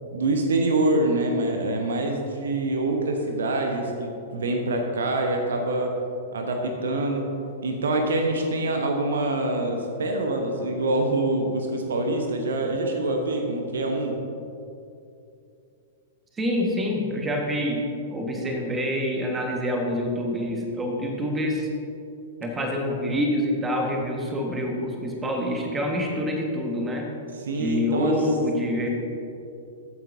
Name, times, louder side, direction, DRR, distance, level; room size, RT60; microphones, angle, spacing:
voice 1, 0.1-5.9 6.3-7.3 7.6-14.2 18.2-18.5 27.4-28.2, right 2 dB, 60° right, 3 dB, 1.0 m, -25 dB
voice 2, 16.4-21.7 22.4-27.1 27.5-28.9, left 1 dB, 15° right, 1 dB, 1.5 m, -26 dB
14.0 x 9.2 x 2.7 m, 2.6 s
figure-of-eight pair, 105°, 0 cm